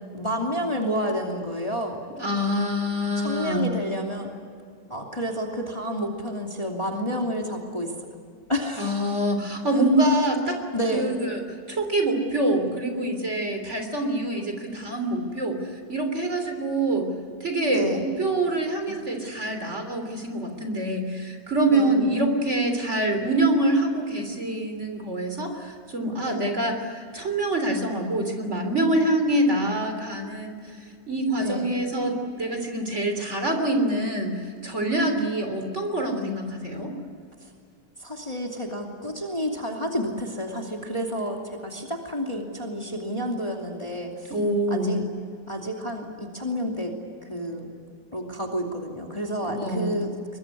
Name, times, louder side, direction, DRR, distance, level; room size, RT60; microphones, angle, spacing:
voice 1, 0.1-2.0 3.0-4.3 4.9-7.9 8.5-9.2 9.7-9.8 10.7-11.1 17.7-18.0 21.7-21.9 26.2-26.5 31.4-31.7 34.0-34.1 35.2-35.3 37.4-37.5 38.0-44.3 44.7-45.0 45.5-46.9 47.2-47.7 48.1-50.1, equal, 15° left, 1 dB, 2.7 m, -30 dB
voice 2, 2.2-3.7 8.8-10.6 10.9-11.4 11.7-17.1 17.4-30.6 31.1-34.3 34.6-36.9 44.3-44.9 49.5-50.0, right 1 dB, 40° right, 5 dB, 3.6 m, -25 dB
23.0 x 22.0 x 9.8 m, 2.3 s
omnidirectional pair, 2.0 m